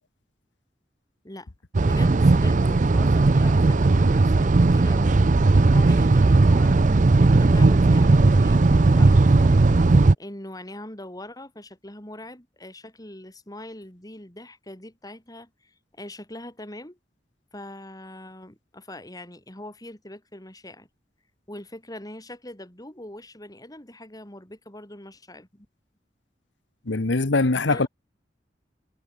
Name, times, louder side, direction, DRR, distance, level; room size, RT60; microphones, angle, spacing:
sound 1, 1.7-10.1, right 3 dB, 45° right, 0.6 m, -17 dB
voice 1, 1.8-5.2 5.7-8.6 8.9-9.6 10.2-17.0 17.5-20.9 21.5-25.7 27.7-27.9, left 1 dB, 20° left, 6.4 m, -42 dB
voice 2, 26.9-27.9, left 3 dB, 85° left, 1.2 m, -22 dB
head